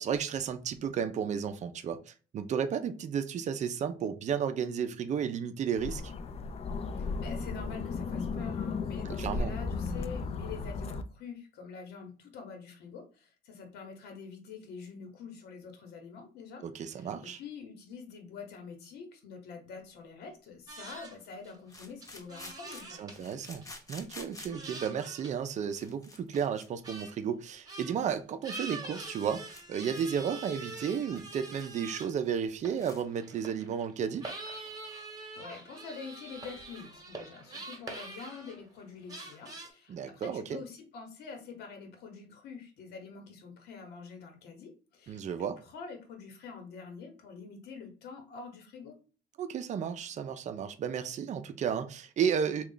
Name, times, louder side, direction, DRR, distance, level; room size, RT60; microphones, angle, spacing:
voice 1, 0.0-6.1 9.2-9.5 16.6-17.4 23.0-23.6 23.9-29.4 29.7-34.2 39.9-40.6 45.1-45.6 49.4-52.6, right 7 dB, 45° right, 0.5 m, -33 dB
sound 1, 5.8-11.0, left 4 dB, 35° left, 0.4 m, -35 dB
voice 2, 6.9-23.3 35.1-49.0, left 5 dB, 75° left, 1.1 m, -46 dB
sound 2, 19.8-19.9 21.7-24.7 25.4-25.5 25.7-26.7 27.0-27.1 27.6-27.7 28.0-28.2 28.5-28.6 28.8-29.2 29.5-29.6 29.9-30.1 30.5-31.7 32.0-32.1 32.4-32.5 32.7-33.2, left 2 dB, 20° left, 0.8 m, -50 dB
sound 3, 20.7-21.2 21.4-21.8 22.0-23.2 23.6-23.7 24.2-25.4 25.7-25.9 26.3-26.4 26.8-27.1 27.6-28.0 28.4-32.3 32.6-38.8 39.1-39.7, right 3 dB, 20° right, 1.1 m, -44 dB
3.2 x 2.4 x 3.8 m
cardioid pair, 110°, 17 cm